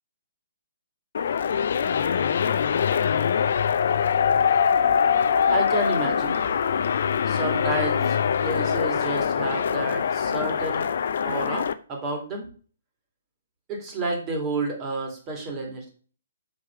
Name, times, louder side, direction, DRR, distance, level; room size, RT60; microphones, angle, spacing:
sound 1, 1.1-11.7, left 7 dB, 55° left, 0.6 m, -23 dB
voice 1, 5.5-6.4 7.3-10.9 11.2-12.5 13.7-15.9, right 2 dB, 25° right, 2 dB, 3.1 m, -30 dB
7.3 x 6.2 x 4.9 m, 0.41 s
figure-of-eight pair, 130°, 0 cm